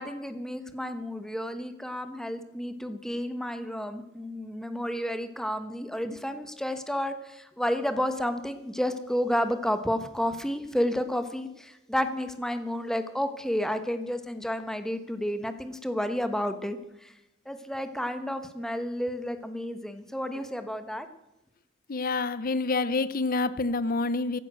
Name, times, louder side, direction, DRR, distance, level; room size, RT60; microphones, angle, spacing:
voice 1, 0.0-17.1 17.5-21.1, equal, ahead, 1.1 m, -31 dB
voice 2, 21.9-24.4, left 3 dB, 40° left, 0.7 m, -27 dB
15.5 x 11.5 x 6.3 m
head